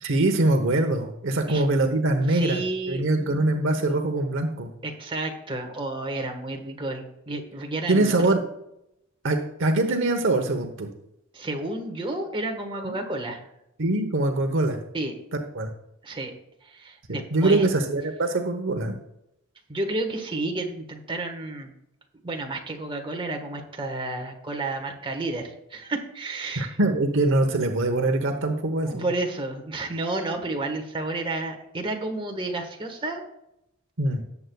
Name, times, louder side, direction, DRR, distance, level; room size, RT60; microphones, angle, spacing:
voice 1, 0.0-2.6 2.9-4.8 7.9-8.4 9.2-10.9 12.8-13.0 13.8-14.8 15.3-15.7 17.1-18.9 26.6-29.1 34.0-34.2, right 2 dB, 60° right, 5 dB, 1.0 m, -23 dB
voice 2, 2.3-3.6 4.8-8.4 11.3-13.4 14.9-15.1 16.0-16.3 16.6-17.6 19.7-21.7 22.2-26.8 28.7-33.2, right 2 dB, 25° right, 2 dB, 1.4 m, -31 dB
18.0 x 7.9 x 2.3 m, 0.82 s
head